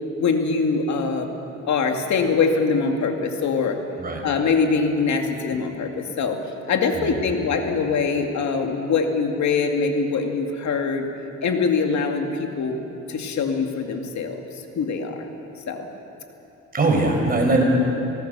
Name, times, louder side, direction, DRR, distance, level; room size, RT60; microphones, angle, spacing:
voice 1, 0.2-1.3 1.7-3.8 4.2-6.4 6.7-11.0 11.4-12.8 13.1-14.4 14.8-15.3 15.7-15.9, left 4 dB, 65° left, 4 dB, 2.4 m, -23 dB
voice 2, 6.9-7.3 16.7-17.6, right 2 dB, 30° right, 0 dB, 5.5 m, -21 dB
25.5 x 17.5 x 6.9 m, 3.0 s
cardioid pair, 90°, 30 cm